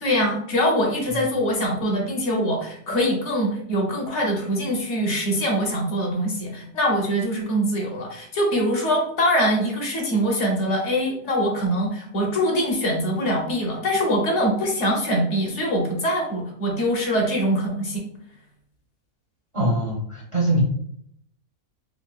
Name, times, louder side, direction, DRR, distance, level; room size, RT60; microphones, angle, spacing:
voice 1, 0.0-18.0, equal, 60° left, 0 dB, 0.9 m, -23 dB
voice 2, 19.5-20.6, right 1 dB, 45° right, -4 dB, 0.4 m, -23 dB
3.5 x 2.4 x 2.3 m, 0.67 s
omnidirectional pair, 1.5 m